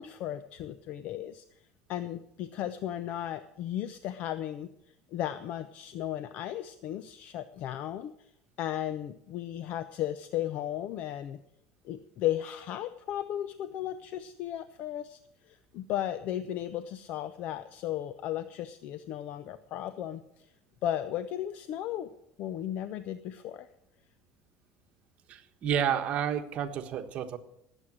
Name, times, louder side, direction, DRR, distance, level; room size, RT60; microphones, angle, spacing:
voice 1, 0.0-1.4 1.9-4.7 5.1-8.3 8.6-11.4 11.8-20.5 20.8-22.1 22.4-23.7, left 12 dB, 50° left, 12 dB, 0.6 m, -35 dB
voice 2, 25.3-27.4, right 9 dB, 40° right, 6 dB, 1.3 m, -30 dB
19.0 x 8.1 x 6.2 m, 0.77 s
cardioid pair, 150°, 3 cm